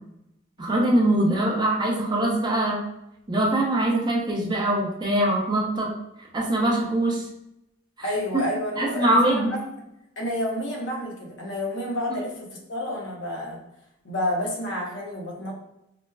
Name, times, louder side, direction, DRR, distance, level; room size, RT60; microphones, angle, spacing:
voice 1, 0.6-2.8 3.3-5.9 6.3-7.2 8.8-9.5, right 1 dB, 25° right, -2 dB, 0.5 m, -22 dB
voice 2, 8.0-9.7 10.2-13.6 14.0-15.5, left 1 dB, 75° left, -2 dB, 0.8 m, -29 dB
4.8 x 2.1 x 2.2 m, 0.85 s
head